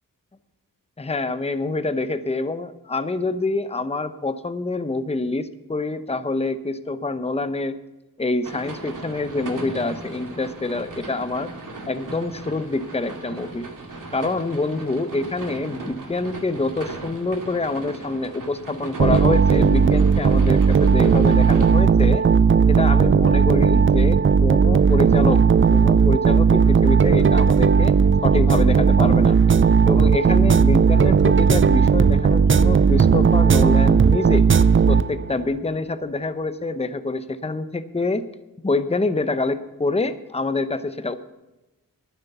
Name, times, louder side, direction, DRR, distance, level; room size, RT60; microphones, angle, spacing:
voice 1, 1.0-7.8 8.2-11.5 11.9-13.7 14.1-22.2 22.7-25.4 25.7-27.9 28.2-29.4 29.9-34.4 34.9-38.2 38.6-41.2, left 2 dB, 20° left, 11 dB, 0.8 m, -26 dB
sound 1, 8.4-21.7, right 2 dB, 65° right, 2.4 m, -37 dB
sound 2, 19.0-35.4, right 6 dB, 35° right, 0.4 m, -16 dB
11.5 x 9.6 x 6.8 m, 1.0 s
cardioid pair, 55°, 34 cm